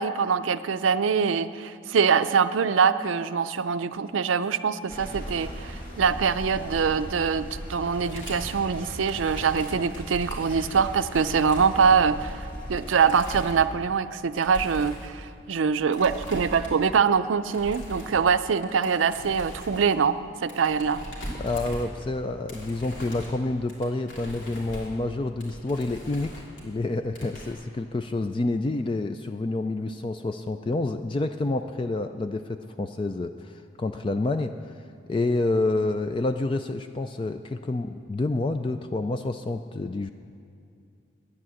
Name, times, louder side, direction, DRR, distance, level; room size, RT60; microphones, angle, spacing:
voice 1, 0.0-21.0, right 6 dB, 90° right, 12 dB, 0.5 m, -24 dB
sound 1, 4.9-12.9, equal, 45° left, 2.0 m, -38 dB
sound 2, 8.0-14.0 14.4-15.1 15.9-16.9 17.2-18.4 18.6-22.2 22.5-26.8 27.1-27.5, equal, 80° left, 3.1 m, -40 dB
voice 2, 21.4-26.3 26.6-34.7 35.1-40.1, left 2 dB, 25° left, 7 dB, 0.3 m, -28 dB
11.0 x 9.6 x 7.7 m, 2.5 s
head